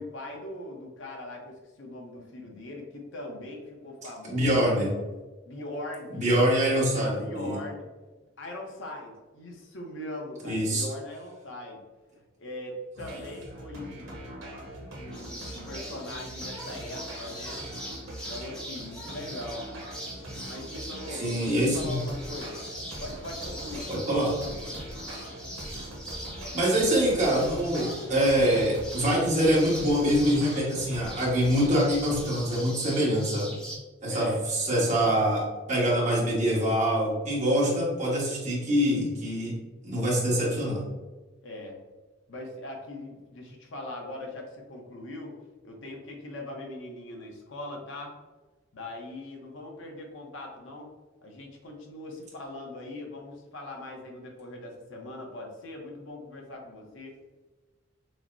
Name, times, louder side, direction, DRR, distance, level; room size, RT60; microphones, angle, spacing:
voice 1, 0.0-4.6 5.4-6.5 6.9-7.8 8.4-11.8 12.4-14.3 15.0-17.6 18.0-19.7 20.5-22.7 23.0-24.8 34.1-34.4 41.4-41.8 42.3-45.4 45.6-48.2 48.7-50.9 51.2-57.2, left 1 dB, 70° left, 0 dB, 0.8 m, -41 dB
voice 2, 4.3-4.9 6.1-7.6 10.4-10.8 21.1-22.0 23.9-24.4 26.5-33.6 34.0-39.5 39.8-40.8, equal, 40° right, -6 dB, 1.4 m, -25 dB
sound 1, 13.0-32.3, right 1 dB, 80° right, 1.1 m, -42 dB
sound 2, 15.1-33.8, equal, 5° left, 0.7 m, -42 dB
6.3 x 2.1 x 2.6 m, 1.2 s
head